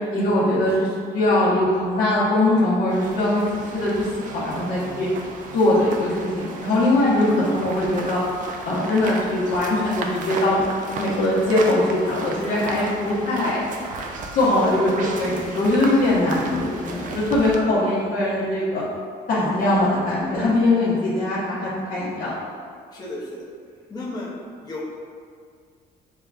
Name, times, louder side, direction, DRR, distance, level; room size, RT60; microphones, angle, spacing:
voice 1, 0.1-5.1 5.5-8.2 8.6-10.6 11.0-13.6 14.3-18.8 19.3-22.3, left 1 dB, 55° left, -11 dB, 1.2 m, -21 dB
sound 1, 2.9-17.6, right 3 dB, 50° right, 0.5 m, -35 dB
voice 2, 22.9-23.5 23.9-24.3 24.6-24.8, left 2 dB, 20° left, -6 dB, 0.9 m, -34 dB
6.9 x 2.4 x 2.4 m, 2.1 s
cardioid pair, 110°, 17 cm